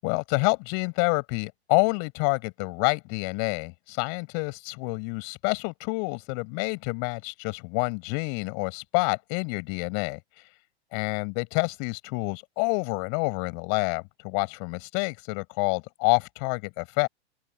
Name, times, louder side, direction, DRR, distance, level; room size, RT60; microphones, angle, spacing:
voice 1, 0.0-10.2 10.9-17.1, left 40 dB or more, 40° left, 7.8 m, -28 dB
open air
figure-of-eight pair, 100°, 34 cm